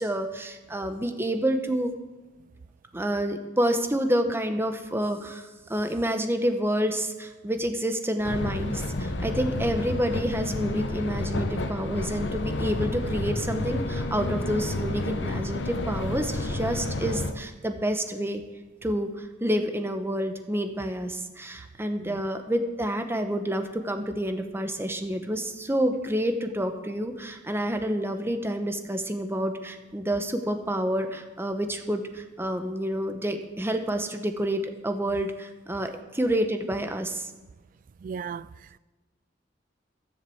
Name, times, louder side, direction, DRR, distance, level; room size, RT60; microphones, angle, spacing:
voice 1, 0.0-1.9 2.9-18.4 18.8-37.3, equal, 15° right, 1.1 m, -28 dB
sound 1, 8.2-17.3, left 2 dB, 75° left, 1.1 m, -30 dB
voice 2, 38.0-38.8, right 6 dB, 45° right, 0.3 m, -37 dB
13.5 x 7.5 x 7.8 m
head